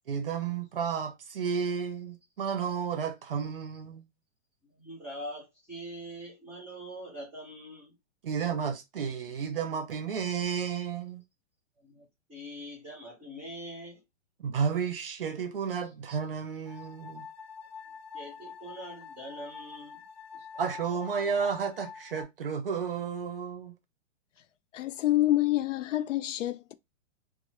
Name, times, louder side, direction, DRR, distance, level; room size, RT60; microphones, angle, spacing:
voice 1, 0.1-4.0 8.2-11.2 14.4-17.3 20.6-23.7, right 6 dB, 50° right, 0.6 m, -32 dB
voice 2, 4.7-7.9 11.8-14.0 15.8-15.9 18.1-20.0 20.3-20.5, right 1 dB, 5° right, 0.5 m, -43 dB
sound 1, 16.7-22.2, left 6 dB, 35° left, 0.7 m, -46 dB
voice 3, 24.7-26.7, left 15 dB, 75° left, 0.5 m, -27 dB
3.0 x 2.1 x 3.0 m
hypercardioid pair, 175°, 38 cm